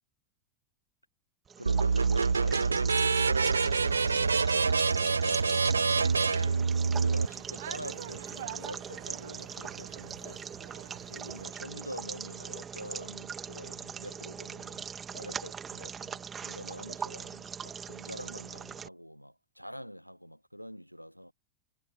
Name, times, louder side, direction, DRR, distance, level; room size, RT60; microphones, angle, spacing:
sound 1, 1.5-18.9, right 7 dB, 20° right, 2.8 m, -41 dB
voice 1, 1.6-21.3, equal, 90° left, 1.3 m, -45 dB
sound 2, 1.7-7.3, right 4 dB, 75° right, 0.4 m, -26 dB
sound 3, 3.7-11.5, right 14 dB, 55° right, 1.1 m, -48 dB
figure-of-eight pair, 90°, 0 cm